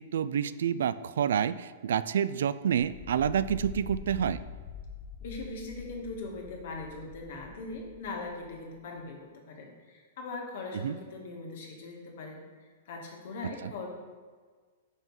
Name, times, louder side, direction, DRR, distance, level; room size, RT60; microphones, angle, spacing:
voice 1, 0.0-4.4 10.7-11.0, right 8 dB, 80° right, 15 dB, 0.3 m, -28 dB
sound 1, 2.7-8.7, left 6 dB, 25° left, 0.5 m, -45 dB
voice 2, 5.2-13.9, left 3 dB, 60° left, 1 dB, 1.5 m, -41 dB
5.6 x 5.5 x 4.7 m, 1.5 s
hypercardioid pair, 160°, 0 cm